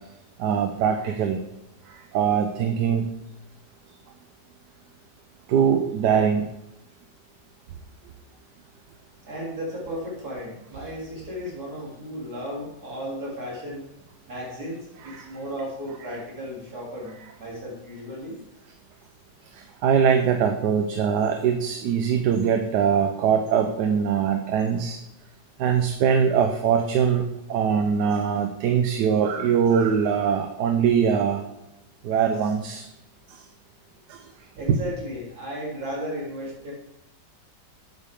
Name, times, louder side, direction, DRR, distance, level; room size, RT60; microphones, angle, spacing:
voice 1, 0.4-1.4 1.8-3.1 5.5-6.5 15.1-15.2 19.5-25.0 25.6-31.4 32.0-32.9 33.3-33.4 34.1-34.2 34.7-34.8, right 7 dB, 80° right, 5 dB, 1.3 m, -22 dB
voice 2, 9.2-13.8 14.3-18.4 34.6-36.7, equal, 65° right, -4 dB, 3.5 m, -35 dB
9.3 x 8.2 x 3.6 m, 0.87 s
omnidirectional pair, 1.8 m